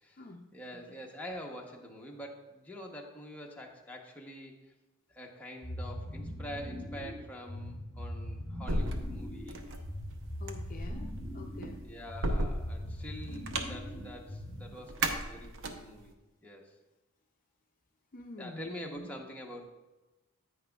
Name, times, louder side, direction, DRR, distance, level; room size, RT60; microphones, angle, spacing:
voice 1, 0.5-4.6 5.1-9.6 11.8-16.1 16.4-16.7 18.4-19.7, equal, 5° left, -1 dB, 0.9 m, -45 dB
sound 1, 5.6-14.8, equal, 10° right, 2.7 m, -41 dB
sound 2, 8.7-16.1, right 1 dB, 60° right, 0.7 m, -36 dB
voice 2, 10.4-11.8 18.1-19.2, left 2 dB, 40° left, 3 dB, 0.5 m, -47 dB
9.8 x 8.8 x 2.3 m, 1.1 s
head